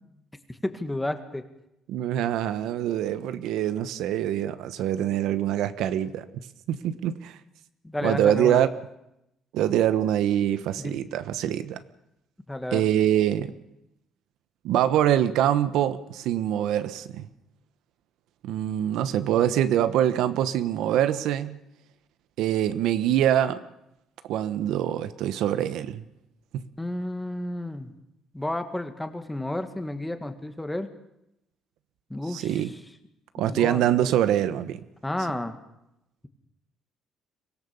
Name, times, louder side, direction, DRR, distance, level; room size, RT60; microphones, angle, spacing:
voice 1, 0.6-1.4 6.9-7.0 7.8-8.6 10.8-10.9 12.5-12.8 26.8-27.9 28.3-30.9 32.1-32.7 33.4-33.9 35.0-35.6, left 1 dB, 10° left, 1.9 m, -31 dB
voice 2, 1.9-6.2 6.7-7.4 8.0-8.7 9.5-11.8 12.7-13.5 14.6-17.3 18.4-21.6 22.4-23.6 24.3-26.0 26.5-26.7 32.3-32.7 33.4-34.8, right 11 dB, 80° right, 1.2 m, -24 dB
24.0 x 17.5 x 7.2 m
cardioid pair, 120°, 0 cm